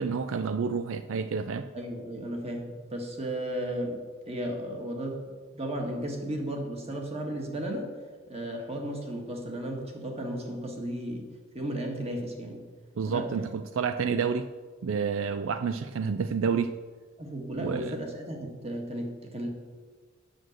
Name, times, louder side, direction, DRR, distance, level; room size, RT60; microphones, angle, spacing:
voice 1, 0.0-1.7 13.0-14.5 14.8-16.7 17.6-18.0, right 6 dB, 70° right, 11 dB, 0.4 m, -29 dB
voice 2, 1.7-4.0 4.3-5.2 5.5-7.9 8.3-11.3 11.5-12.6 13.1-13.5 17.2-19.5, right 1 dB, 30° right, 1 dB, 1.7 m, -34 dB
8.7 x 6.3 x 7.7 m, 1.5 s
head